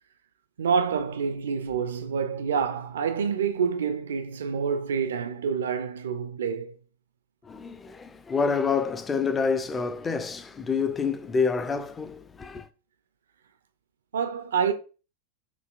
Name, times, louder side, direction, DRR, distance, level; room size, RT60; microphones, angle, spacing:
voice 1, 0.6-6.7 14.1-14.7, right 6 dB, 65° right, 0.4 m, -27 dB
voice 2, 7.4-12.7, left 5 dB, 15° left, 0.4 m, -27 dB
6.2 x 2.8 x 2.4 m
figure-of-eight pair, 90°, 0 cm